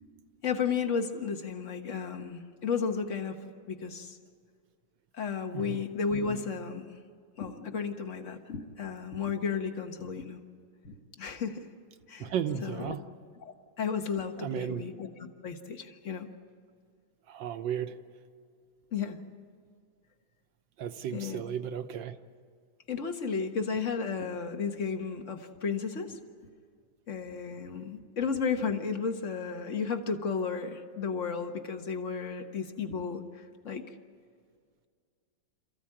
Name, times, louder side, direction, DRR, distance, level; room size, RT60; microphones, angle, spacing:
voice 1, 0.4-4.2 5.1-6.9 7.4-10.4 10.8-11.7 12.1-12.3 12.6-13.0 13.4-16.3 18.9-19.2 21.1-21.4 22.9-26.2 27.1-33.8, left 5 dB, 40° left, 6 dB, 1.5 m, -33 dB
voice 2, 12.2-13.0 14.4-14.8 17.3-18.0 20.8-22.1, right 9 dB, 65° right, 9 dB, 1.4 m, -34 dB
28.0 x 15.0 x 8.7 m, 2.1 s
omnidirectional pair, 2.3 m